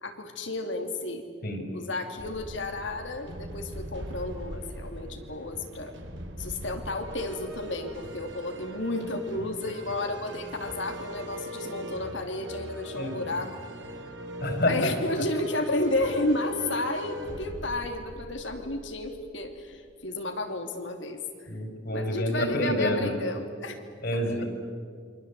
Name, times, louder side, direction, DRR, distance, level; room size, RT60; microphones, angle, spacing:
voice 1, 0.0-1.3 1.7-5.9 6.4-13.6 14.7-21.5 21.9-23.8 24.1-24.4, left 2 dB, 70° left, 5 dB, 2.9 m, -32 dB
sound 1, 2.2-19.8, equal, 70° right, 3.1 m, -40 dB
voice 2, 12.9-13.3 14.4-14.9 21.5-23.1 24.0-24.4, left 1 dB, 50° left, 4 dB, 4.9 m, -28 dB
28.5 x 24.5 x 8.4 m, 2.2 s
head